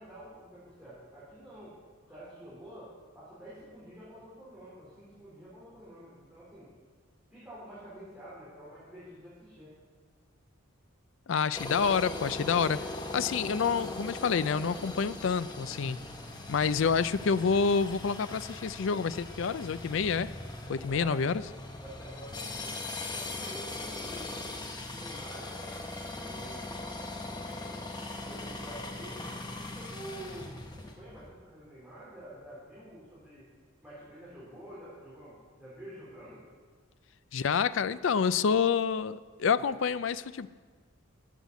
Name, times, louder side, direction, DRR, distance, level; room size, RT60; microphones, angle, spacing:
voice 1, 0.0-1.7 2.1-6.7 7.3-9.7 20.9-21.3 21.8-22.8 23.1-24.5 24.9-27.8 28.2-29.3 29.6-33.5 33.8-36.4, right 1 dB, 5° right, -11 dB, 4.4 m, -48 dB
voice 2, 11.3-16.0 16.5-20.3 20.7-21.4 37.3-40.5, left 6 dB, 60° left, 15 dB, 0.4 m, -28 dB
sound 1, 11.5-31.3, left 2 dB, 20° left, 1.0 m, -40 dB
12.0 x 8.1 x 8.3 m, 1.6 s
head